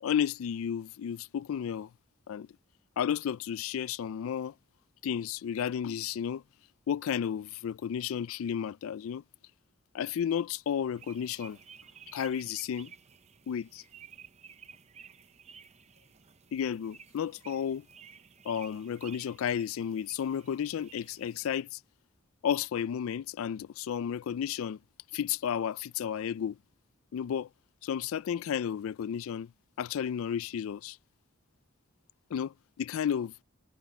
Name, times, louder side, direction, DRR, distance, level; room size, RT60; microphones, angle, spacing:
voice 1, 0.0-1.9 2.3-2.5 3.0-4.5 5.0-6.4 6.9-9.2 9.9-11.6 12.1-12.9 13.5-13.8 16.5-17.8 18.5-21.8 22.4-24.8 25.1-26.6 27.1-27.5 27.8-29.5 29.8-31.0 32.3-33.3, left 8 dB, 90° left, 0.3 m, -32 dB
sound 1, 10.9-21.5, right 7 dB, 35° right, 0.7 m, -54 dB
head